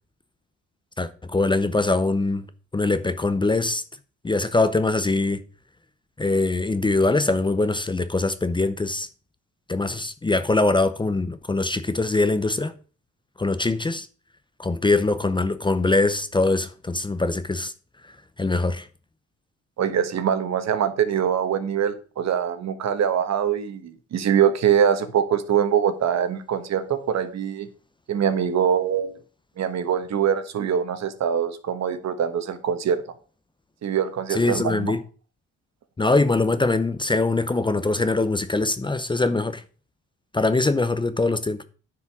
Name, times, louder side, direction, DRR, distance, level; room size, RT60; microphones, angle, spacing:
voice 1, 1.0-2.4 2.7-3.8 4.2-5.4 6.2-9.1 9.7-12.8 13.4-14.1 14.6-17.7 18.4-18.9 34.3-35.0 36.0-39.6 40.3-41.6, left 2 dB, 15° left, 0.7 m, -22 dB
voice 2, 19.8-27.7 28.1-29.1 29.6-33.0 33.8-34.9, right 8 dB, 60° right, 1.3 m, -23 dB
9.6 x 5.0 x 6.0 m
cardioid pair, 90°, 30 cm